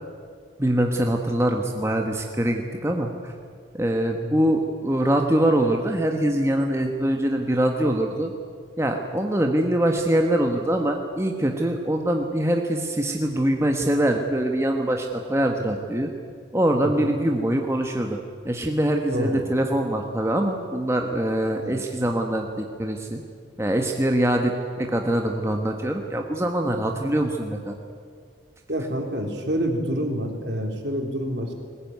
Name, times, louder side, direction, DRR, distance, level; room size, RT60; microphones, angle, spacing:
voice 1, 0.6-3.3 3.7-8.3 8.8-16.1 16.5-18.2 18.4-23.2 23.6-27.8, right 1 dB, 15° right, 2 dB, 1.3 m, -23 dB
voice 2, 19.1-19.4 21.6-21.8 28.7-31.5, equal, 60° right, 3 dB, 3.6 m, -27 dB
21.0 x 20.5 x 9.4 m, 2.1 s
head